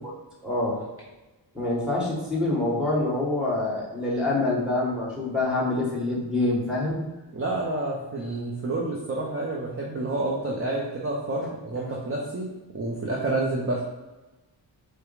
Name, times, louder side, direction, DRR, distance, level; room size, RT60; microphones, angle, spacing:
voice 1, 0.4-0.8 1.5-7.1, left 2 dB, ahead, -5 dB, 1.5 m, -26 dB
voice 2, 7.3-13.8, right 2 dB, 30° right, -3 dB, 0.6 m, -29 dB
4.8 x 2.2 x 4.8 m, 1.1 s
wide cardioid pair, 125°, 45 cm